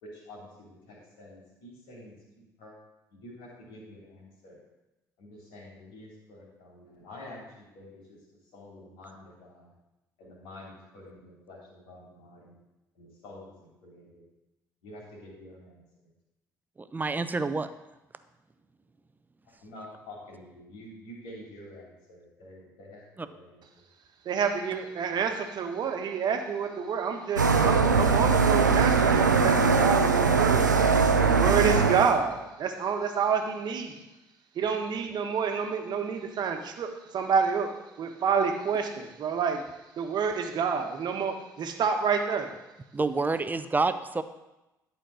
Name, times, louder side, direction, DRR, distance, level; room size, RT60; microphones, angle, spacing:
voice 1, 0.0-2.7 3.1-4.6 5.2-8.2 8.5-9.7 10.2-12.5 12.9-14.2 14.8-15.8 19.5-23.6, left 1 dB, 60° left, -3 dB, 3.2 m, -48 dB
voice 2, 16.8-17.7 23.2-23.3 42.9-44.2, right 3 dB, 20° right, 11 dB, 0.7 m, -28 dB
voice 3, 24.2-30.8 31.2-34.0 34.5-37.7 38.0-39.6 40.0-42.5, right 6 dB, 50° right, 4 dB, 1.3 m, -28 dB
sound 1, 27.4-32.1, right 5 dB, 90° right, 0.5 m, -21 dB
11.0 x 4.6 x 6.3 m, 0.98 s
figure-of-eight pair, 50°, 10 cm